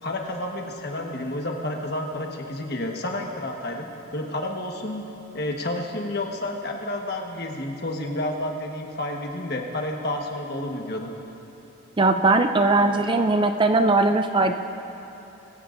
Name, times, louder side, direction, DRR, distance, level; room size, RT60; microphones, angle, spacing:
voice 1, 0.0-3.9 4.1-5.0 5.3-11.1, left 1 dB, 50° left, 1 dB, 1.3 m, -30 dB
voice 2, 12.0-14.5, right 2 dB, 25° right, 7 dB, 0.4 m, -19 dB
22.5 x 16.5 x 2.6 m, 3.0 s
head